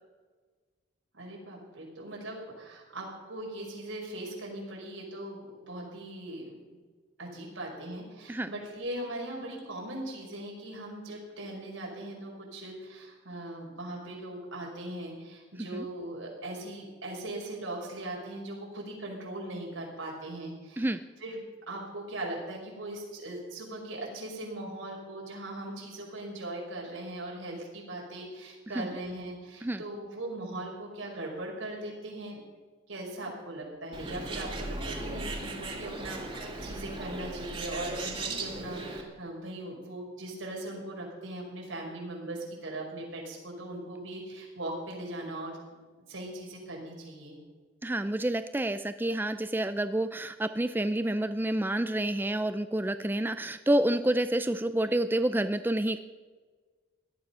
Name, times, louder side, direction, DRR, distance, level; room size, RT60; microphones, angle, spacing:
voice 1, 1.1-6.6 7.2-20.9 21.2-21.4 21.7-32.4 32.9-45.6 46.1-47.4, right 1 dB, 85° right, -1 dB, 5.3 m, -39 dB
Bird, 33.9-39.0, right 2 dB, 25° right, 2.3 m, -37 dB
voice 2, 47.8-56.0, right 1 dB, 10° right, 10 dB, 0.4 m, -28 dB
17.5 x 12.5 x 5.6 m, 1.4 s
head